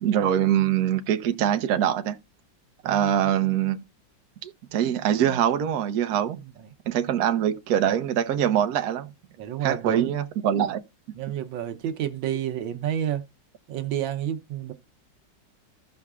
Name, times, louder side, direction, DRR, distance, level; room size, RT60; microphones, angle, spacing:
voice 1, 0.0-2.2 2.8-3.8 4.4-6.4 6.9-9.1 9.6-10.8, right 10 dB, 65° right, 1.1 m, -23 dB
voice 2, 2.8-3.4 6.6-6.7 9.4-10.1 11.1-13.2 13.7-14.7, right 10 dB, 90° right, 1.6 m, -30 dB
15.5 x 5.6 x 2.4 m
omnidirectional pair, 2.0 m